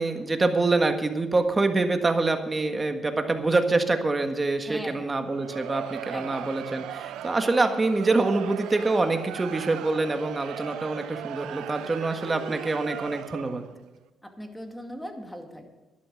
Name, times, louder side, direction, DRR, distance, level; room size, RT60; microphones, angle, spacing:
voice 1, 0.0-13.6, right 3 dB, 25° right, 6 dB, 1.6 m, -25 dB
voice 2, 4.7-5.1 6.1-6.5 14.2-15.7, equal, 5° left, 4 dB, 2.2 m, -39 dB
Crowd, 5.2-13.7, right 11 dB, 90° right, 0.6 m, -38 dB
12.0 x 11.5 x 6.4 m, 1.1 s
cardioid pair, 90°, 0 cm